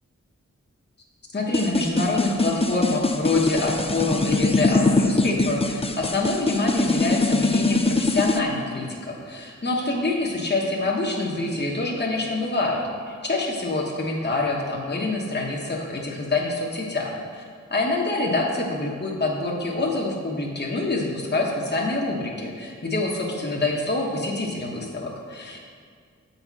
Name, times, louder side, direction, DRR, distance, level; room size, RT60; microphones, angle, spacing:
voice 1, 1.3-17.4 17.7-25.6, left 2 dB, 35° left, -2 dB, 1.1 m, -26 dB
sound 1, 1.5-8.4, left 2 dB, 20° left, 0.5 m, -22 dB
7.8 x 4.2 x 6.0 m, 2.1 s
wide cardioid pair, 50°, 30 cm